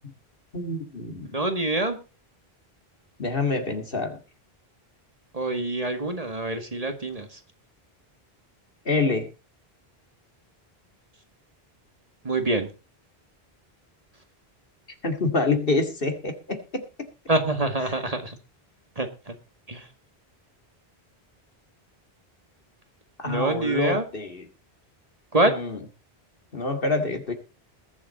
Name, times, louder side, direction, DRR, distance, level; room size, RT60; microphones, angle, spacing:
voice 1, 0.5-1.4 3.2-4.2 8.9-9.3 15.0-17.1 23.2-24.4 25.4-25.8 26.5-27.3, left 3 dB, 60° left, 6 dB, 2.3 m, -27 dB
voice 2, 1.3-2.0 5.3-7.4 12.2-12.7 17.3-18.4 19.0-19.4 19.7-19.9 23.2-24.1 25.3-25.6, right 2 dB, 35° right, 6 dB, 2.0 m, -26 dB
21.0 x 7.5 x 4.1 m, 0.32 s
omnidirectional pair, 1.1 m